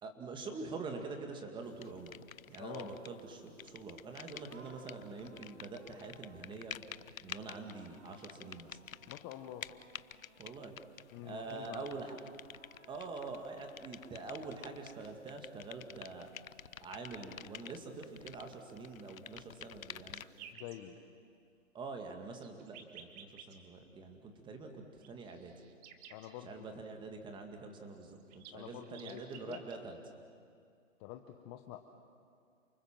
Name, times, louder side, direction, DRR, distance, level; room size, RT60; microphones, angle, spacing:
voice 1, 0.0-2.2 2.5-6.8 7.2-8.8 10.4-10.8 11.2-12.1 12.9-16.3 16.8-20.2 21.7-25.5 26.4-30.0, right 4 dB, 10° right, 4 dB, 2.1 m, -45 dB
sound 1, 1.8-3.2 3.5-20.5, left 9 dB, 90° left, 0.8 m, -50 dB
voice 2, 2.6-2.9 9.1-9.7 11.1-11.9 20.5-21.0 26.1-26.7 28.5-29.6 31.0-31.8, left 12 dB, 20° left, 6 dB, 0.8 m, -47 dB
sound 2, 4.4-10.7 11.3-15.2, right 1 dB, 90° right, 6.8 m, -63 dB
sound 3, 20.1-20.8 22.2-23.6 25.0-26.4 27.7-27.8 28.0-29.8, right 8 dB, 30° right, 1.9 m, -53 dB
29.0 x 20.5 x 7.5 m, 2.3 s
hypercardioid pair, 145°, 40 cm